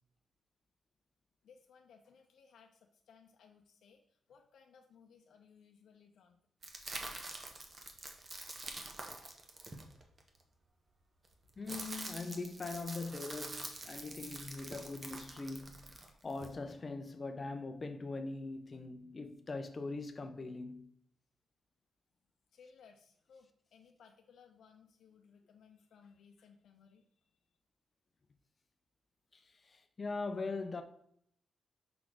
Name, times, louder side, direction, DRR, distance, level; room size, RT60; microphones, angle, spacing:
voice 1, 1.4-6.4 22.5-27.0, left 6 dB, 70° left, 0.7 m, -62 dB
sound 1, 6.6-10.4 11.2-16.5, right 2 dB, 30° right, 0.9 m, -46 dB
voice 2, 11.6-20.9 29.3-30.8, left 3 dB, 30° left, 0.6 m, -42 dB
5.8 x 4.2 x 4.7 m
wide cardioid pair, 160°, 0 cm